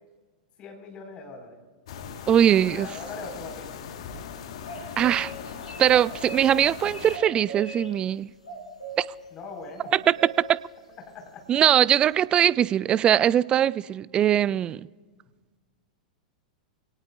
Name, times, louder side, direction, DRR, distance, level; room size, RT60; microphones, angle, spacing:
voice 1, 0.6-1.6 2.4-3.8 9.3-9.9 11.1-11.4, left 3 dB, 30° left, 2 dB, 4.2 m, -41 dB
sound 1, 1.9-7.2, left 7 dB, 55° left, 1.3 m, -39 dB
voice 2, 2.3-2.9 5.0-5.3 5.8-8.3 9.0-9.1 9.9-10.1 10.5-10.6 11.5-14.8, right 10 dB, 25° right, 20 dB, 0.3 m, -21 dB
sound 2, 4.6-5.3 5.6-6.5 6.9-7.9 8.4-9.0 9.8-10.3, right 4 dB, 80° left, 3.3 m, -38 dB
26.0 x 18.5 x 2.3 m, 1.5 s
figure-of-eight pair, 95°, 4 cm